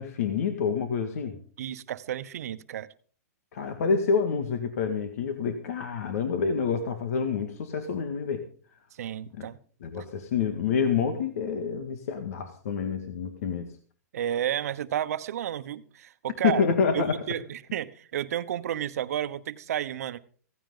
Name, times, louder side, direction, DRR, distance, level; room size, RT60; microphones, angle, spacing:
voice 1, 0.0-1.4 3.5-8.5 9.3-9.5 9.8-13.7 16.4-17.2, left 6 dB, 65° left, 7 dB, 2.0 m, -27 dB
voice 2, 1.6-2.9 9.0-9.6 14.1-16.6 16.9-20.2, right 10 dB, 70° right, 12 dB, 1.1 m, -31 dB
16.5 x 15.5 x 3.9 m, 0.43 s
hypercardioid pair, 140°, 9 cm